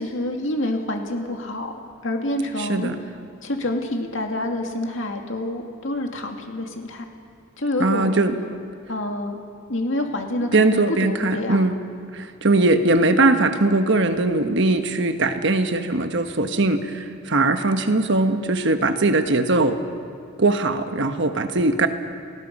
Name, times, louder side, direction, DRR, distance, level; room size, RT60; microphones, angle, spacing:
voice 1, 0.0-1.7 2.0-2.9 3.4-7.0 7.6-8.2 8.9-9.4 9.7-11.7, left 1 dB, 60° left, 3 dB, 2.4 m, -27 dB
voice 2, 2.6-3.0 7.8-8.3 10.5-11.8 12.1-19.8 20.4-21.9, right 2 dB, 55° right, 8 dB, 1.2 m, -20 dB
28.5 x 19.5 x 5.4 m, 2.3 s
head